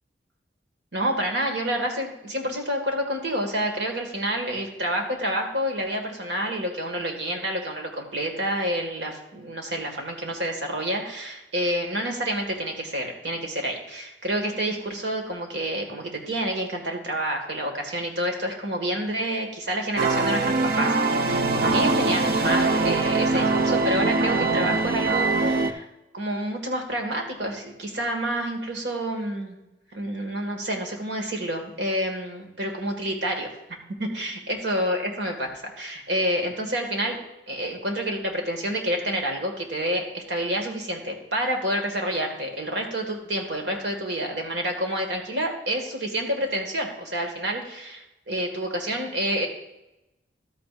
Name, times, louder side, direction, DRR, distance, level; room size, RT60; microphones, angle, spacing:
voice 1, 0.9-25.9 26.1-29.6 29.9-33.5 34.0-35.5 35.8-37.2 37.5-49.5, right 1 dB, 75° right, 3 dB, 1.9 m, -28 dB
sound 1, 20.0-25.7, right 3 dB, 55° right, 0.7 m, -22 dB
12.5 x 8.8 x 2.5 m, 0.93 s
head